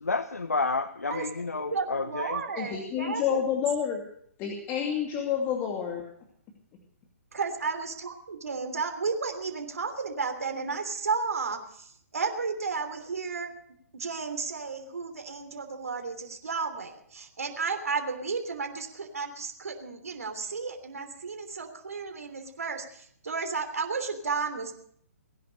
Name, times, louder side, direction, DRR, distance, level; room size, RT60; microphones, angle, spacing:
voice 1, 0.0-2.4, left 3 dB, 85° left, 13 dB, 0.8 m, -30 dB
voice 2, 1.5-3.4 7.3-13.5 13.9-24.7, right 4 dB, 75° right, 5 dB, 3.1 m, -33 dB
voice 3, 2.6-4.0 4.4-6.0, left 8 dB, 25° left, 1 dB, 2.6 m, -29 dB
20.0 x 11.0 x 6.5 m, 0.65 s
figure-of-eight pair, 130°, 8 cm